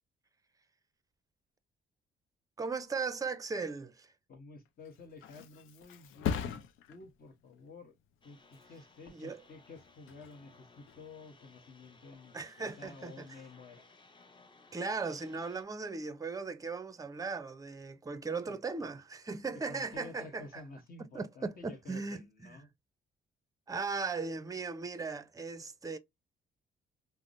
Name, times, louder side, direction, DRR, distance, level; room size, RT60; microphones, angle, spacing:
voice 1, 2.6-4.1 9.1-9.4 12.3-13.3 14.7-20.6 21.1-22.6 23.7-26.0, right 4 dB, 15° right, 0.5 m, -38 dB
voice 2, 4.3-7.9 8.2-13.8 18.5-18.9 19.7-22.7, left 3 dB, 45° left, 1.0 m, -51 dB
Thump thud, 4.7-12.1 12.5-13.0, left 7 dB, 90° left, 0.5 m, -43 dB
sound 1, 8.2-15.6, left 3 dB, 25° left, 0.7 m, -61 dB
3.4 x 2.0 x 2.5 m
cardioid pair, 90°, 20 cm